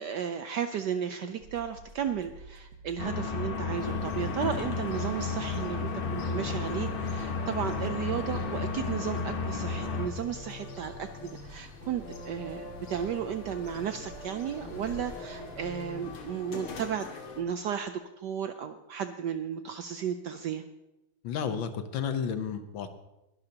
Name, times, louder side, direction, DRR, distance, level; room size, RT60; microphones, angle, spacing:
voice 1, 0.0-17.1 17.4-20.6, right 8 dB, 75° right, 9 dB, 1.0 m, -34 dB
sound 1, 1.4-16.2, right 3 dB, 55° right, 1.7 m, -50 dB
sound 2, 3.0-10.1, left 4 dB, 40° left, 0.7 m, -32 dB
sound 3, 3.7-17.4, left 3 dB, 85° left, 2.5 m, -43 dB
voice 2, 21.2-22.9, left 7 dB, 70° left, 9 dB, 1.5 m, -32 dB
21.0 x 12.0 x 2.9 m, 0.97 s
omnidirectional pair, 2.4 m